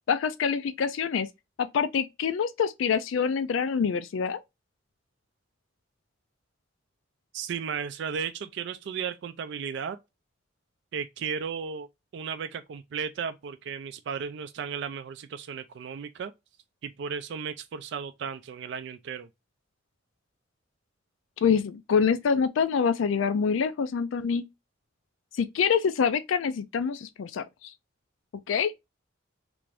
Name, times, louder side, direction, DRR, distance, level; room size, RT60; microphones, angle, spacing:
voice 1, 0.1-1.3 1.6-4.4 21.4-24.5 25.4-27.7 28.5-28.7, left 6 dB, 85° left, 0.4 m, -26 dB
voice 2, 7.3-10.0 10.9-11.9 12.1-16.3 16.8-19.3, right 6 dB, 65° right, 0.3 m, -35 dB
3.3 x 2.5 x 3.2 m
head